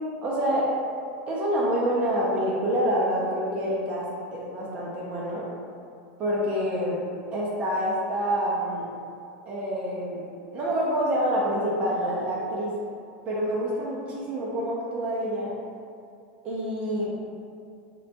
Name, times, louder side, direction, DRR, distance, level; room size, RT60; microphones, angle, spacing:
voice 1, 0.2-0.7 1.3-5.5 6.2-7.0 7.3-8.9 9.5-10.3 10.5-12.7 13.3-15.5 16.4-17.1, equal, 20° right, -5 dB, 0.3 m, -27 dB
3.9 x 2.2 x 2.5 m, 2.4 s
supercardioid pair, 180°, 6 cm